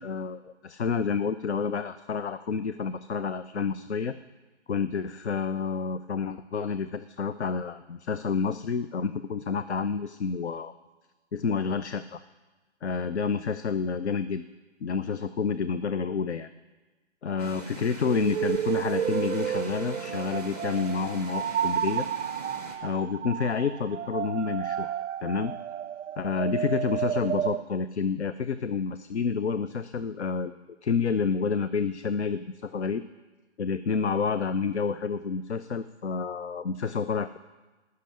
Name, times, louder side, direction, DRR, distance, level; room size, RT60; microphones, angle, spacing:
voice 1, 0.0-4.2 4.7-10.7 11.3-12.2 12.8-14.4 14.8-16.5 17.2-22.1 22.8-24.9 25.2-25.5 26.2-30.5 30.8-33.0 33.6-37.4, left 5 dB, 65° left, 12 dB, 0.6 m, -29 dB
sound 1, 17.4-22.8, right 2 dB, 10° left, 0.8 m, -41 dB
sound 2, 18.1-27.6, right 10 dB, 90° right, 0.5 m, -31 dB
15.5 x 6.7 x 8.9 m, 1.2 s
hypercardioid pair, 175°, 36 cm